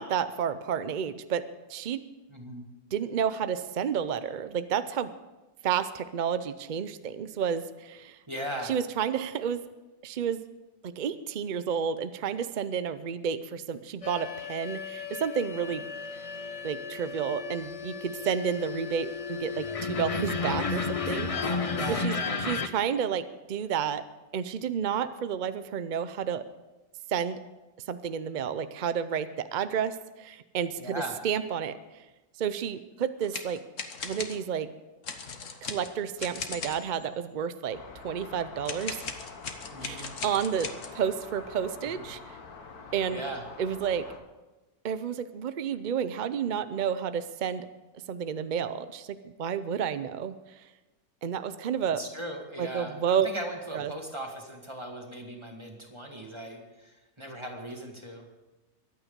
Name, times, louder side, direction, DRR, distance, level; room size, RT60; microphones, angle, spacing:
voice 1, 0.0-2.0 2.9-5.1 5.6-8.2 8.6-9.6 10.0-10.4 10.8-15.9 16.6-21.3 21.9-22.1 22.4-24.0 24.3-26.4 27.1-27.4 27.9-32.0 32.4-33.6 34.0-34.7 35.6-39.0 39.8-42.4 42.9-43.2 43.6-44.1 44.8-47.7 48.1-50.4 51.2-52.0 52.6-53.3 53.7-53.9, right 8 dB, 65° right, 12 dB, 0.4 m, -31 dB
voice 2, 2.3-2.7 8.3-8.7 21.3-22.4 30.8-31.2 39.7-40.1 43.1-43.4 52.0-58.2, right 1 dB, 20° right, 1 dB, 2.1 m, -38 dB
sound 1, 14.0-22.7, left 4 dB, 30° left, 0.6 m, -33 dB
sound 2, 33.2-34.4 35.0-37.0 38.6-41.0, left 5 dB, 60° left, 1.5 m, -38 dB
sound 3, 37.7-44.2, left 4 dB, 85° left, 1.9 m, -46 dB
23.0 x 9.1 x 5.1 m, 1.1 s
omnidirectional pair, 1.6 m